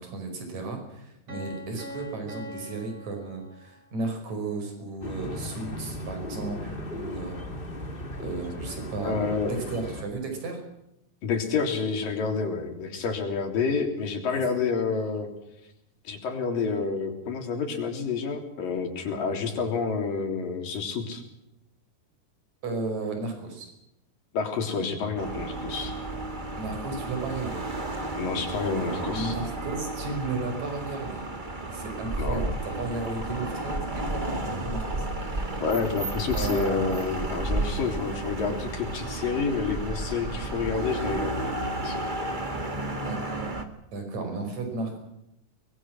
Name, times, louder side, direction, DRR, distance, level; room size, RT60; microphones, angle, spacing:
voice 1, 0.0-7.4 8.2-10.6 14.3-14.4 22.6-23.7 26.6-27.6 29.1-31.3 31.6-35.6 36.3-37.0 43.0-43.6 43.9-45.0, right 3 dB, 55° right, 4 dB, 6.5 m, -34 dB
Piano, 1.3-4.1, equal, 35° right, 5.0 m, -42 dB
sound 1, 5.0-10.0, left 1 dB, 20° left, 1.6 m, -37 dB
voice 2, 9.0-9.5 11.2-15.3 16.0-21.2 24.3-25.9 28.2-29.4 32.2-32.5 35.6-42.0, left 5 dB, 75° left, 4 dB, 5.1 m, -29 dB
sound 2, 25.2-43.6, right 2 dB, 20° right, 1.3 m, -32 dB
23.5 x 22.0 x 6.2 m, 0.85 s
omnidirectional pair, 4.0 m